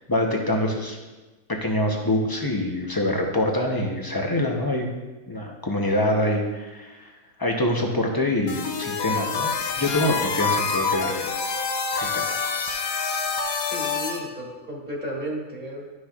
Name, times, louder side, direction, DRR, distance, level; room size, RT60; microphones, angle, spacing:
voice 1, 0.1-1.0 1.5-4.9 5.3-7.1 7.4-9.5 9.8-11.4 11.9-12.5, left 1 dB, 20° left, 1 dB, 0.6 m, -25 dB
sound 1, 8.5-14.2, left 5 dB, 80° left, 1.2 m, -27 dB
voice 2, 13.7-15.9, equal, 30° right, -4 dB, 1.6 m, -33 dB
11.5 x 6.3 x 2.4 m, 1.2 s
omnidirectional pair, 1.5 m